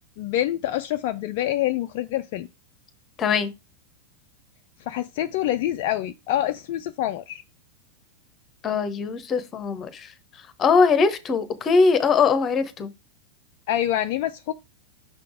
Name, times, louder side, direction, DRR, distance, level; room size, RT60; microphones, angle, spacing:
voice 1, 0.2-2.5 4.9-7.4 13.7-14.5, left 13 dB, 45° left, 0.3 m, -26 dB
voice 2, 3.2-3.5 8.6-12.9, left 5 dB, 25° left, 0.9 m, -21 dB
6.5 x 3.8 x 4.8 m
figure-of-eight pair, 90°, 0 cm